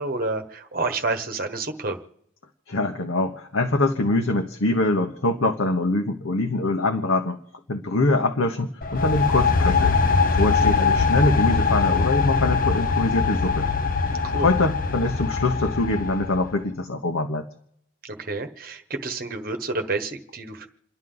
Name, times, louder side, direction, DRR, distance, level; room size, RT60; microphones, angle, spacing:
voice 1, 0.0-2.0 14.2-14.5 18.0-20.7, right 3 dB, 45° right, 6 dB, 1.3 m, -29 dB
voice 2, 2.7-7.4 7.7-10.0 10.3-13.7 14.4-17.5, left 2 dB, 90° left, 4 dB, 1.1 m, -23 dB
sound 1, 8.8-16.6, left 4 dB, 45° left, 0.8 m, -22 dB
29.0 x 11.0 x 3.9 m, 0.72 s
head